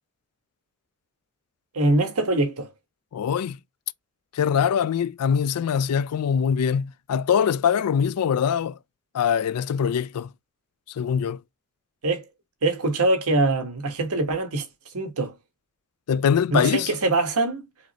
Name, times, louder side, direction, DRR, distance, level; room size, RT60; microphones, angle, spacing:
voice 1, 1.7-2.7 12.0-12.3 12.6-14.7 14.9-15.3 16.5-17.6, right 2 dB, 80° right, 1.3 m, -23 dB
voice 2, 3.1-3.6 4.3-8.8 9.1-10.3 11.0-11.4 16.1-16.9, left 7 dB, 90° left, 0.4 m, -23 dB
4.9 x 3.1 x 2.9 m
head